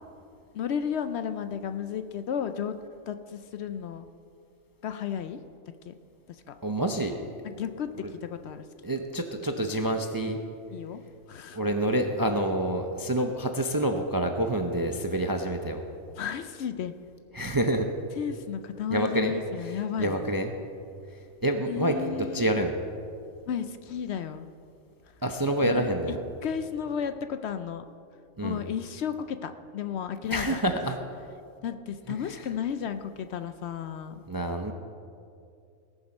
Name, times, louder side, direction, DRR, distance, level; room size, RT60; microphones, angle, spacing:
voice 1, 0.5-2.8 3.1-4.0 4.8-5.4 5.9-6.0 6.3-6.5 7.4-8.6 10.7-11.0 11.3-11.6 16.2-16.9 18.2-20.2 21.7-22.4 23.5-24.5 25.7-26.2 26.4-27.9 28.4-30.6 31.6-34.2, left 8 dB, 65° left, 9 dB, 0.7 m, -33 dB
voice 2, 6.6-7.2 8.0-8.1 8.8-10.4 11.5-15.8 17.3-17.9 18.9-19.3 19.6-20.5 21.4-22.8 25.2-26.2 28.4-28.6 30.3-31.0 32.2-32.5 34.3-34.7, right 1 dB, 25° right, 5 dB, 0.4 m, -27 dB
19.0 x 7.1 x 5.3 m, 2.5 s
omnidirectional pair, 1.3 m